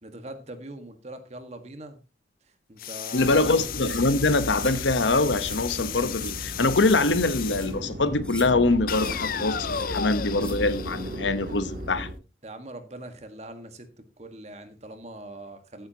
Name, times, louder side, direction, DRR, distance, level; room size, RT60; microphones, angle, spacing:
voice 1, 0.0-2.0 2.7-3.6 11.5-11.6 12.4-13.9 14.2-15.9, right 1 dB, 35° right, 1.6 m, -42 dB
sound 1, 2.8-7.8 8.9-11.8, left 9 dB, 50° left, 0.5 m, -34 dB
voice 2, 3.1-12.1, left 3 dB, 85° left, 1.1 m, -24 dB
sound 2, 3.2-12.1, equal, 65° right, 2.5 m, -36 dB
sound 3, 3.8-4.0 4.5-4.8 5.4-5.6 6.1-6.4 6.8-7.0 7.5-7.7 8.2-8.5 8.9-9.1 9.7-9.9 10.4-10.5, left 2 dB, 5° left, 1.4 m, -41 dB
14.0 x 8.9 x 2.9 m
head